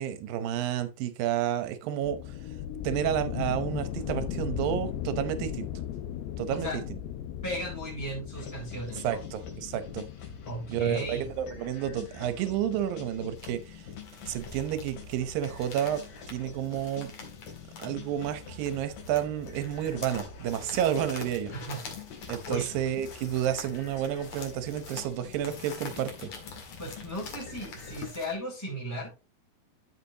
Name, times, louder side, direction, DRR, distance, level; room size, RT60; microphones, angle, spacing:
voice 1, 0.0-2.2 2.8-5.7 6.4-6.7 8.9-10.1 10.7-13.8 14.3-17.1 17.8-21.5 22.3-26.3, right 10 dB, 75° right, 2.3 m, -30 dB
sound 1, 2.0-13.5, left 10 dB, 90° left, 2.8 m, -38 dB
voice 2, 7.4-9.2 10.4-11.2 21.5-21.8 22.5-22.7 26.8-29.1, right 1 dB, 5° left, 3.1 m, -36 dB
sound 2, 8.3-28.1, left 5 dB, 65° left, 3.8 m, -46 dB
sound 3, 13.3-28.3, left 4 dB, 45° left, 2.7 m, -46 dB
12.5 x 6.0 x 2.8 m
omnidirectional pair, 4.7 m